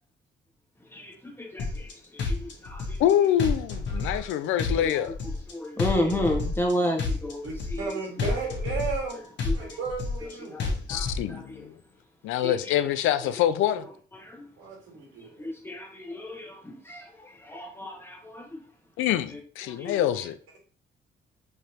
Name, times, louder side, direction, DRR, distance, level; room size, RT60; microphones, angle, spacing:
voice 1, 0.9-3.0 4.0-4.2 4.8-5.0 5.5-7.9 8.2-8.3 9.5-9.8 10.2-10.6 10.9-11.7 12.4-12.7 13.7-13.8 14.2-14.5 15.4-18.6 19.3-19.4 19.6-20.1, left 1 dB, 10° left, 1.2 m, -33 dB
sound 1, 1.6-1.9 2.2-3.1 3.4-4.3 4.6-5.5 5.8-6.7 7.0-7.9 8.2-9.1 9.4-10.3 10.6-11.2, left 4 dB, 65° left, 1.1 m, -29 dB
voice 2, 3.0-5.2 10.9-11.7 12.2-13.9 19.0-20.4, left 11 dB, 90° left, 0.4 m, -25 dB
voice 3, 7.4-9.2 9.6-10.6 14.6-15.5, right 4 dB, 85° right, 1.8 m, -34 dB
4.8 x 3.2 x 2.8 m
cardioid pair, 90°, 20 cm